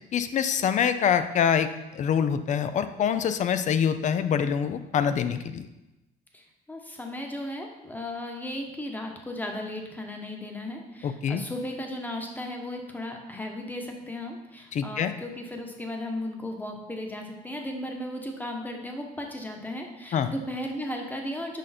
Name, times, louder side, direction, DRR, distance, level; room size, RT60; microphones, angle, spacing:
voice 1, 0.1-5.7 11.0-11.4 14.7-15.1 20.1-20.3, left 8 dB, 45° left, 10 dB, 0.5 m, -25 dB
voice 2, 6.3-21.6, left 1 dB, 10° left, 3 dB, 1.1 m, -36 dB
6.5 x 4.9 x 4.2 m, 0.98 s
cardioid pair, 110°, 17 cm